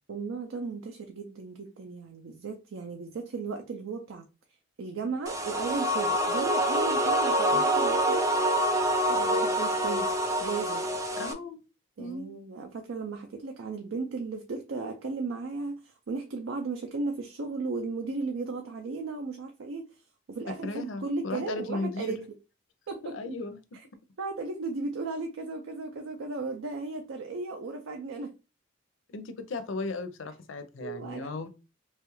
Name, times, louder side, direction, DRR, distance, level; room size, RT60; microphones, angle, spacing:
voice 1, 0.1-4.3 4.8-8.3 9.0-10.9 12.0-19.9 20.3-22.2 22.9-23.1 24.2-28.3 30.8-31.3, right 3 dB, 80° right, 0.4 m, -35 dB
sound 1, 5.3-11.3, right 1 dB, 15° right, 0.3 m, -26 dB
voice 2, 11.2-11.6 12.0-12.3 20.6-22.2 23.0-23.6 29.1-31.5, left 2 dB, 75° left, 0.5 m, -36 dB
3.0 x 2.3 x 3.1 m
head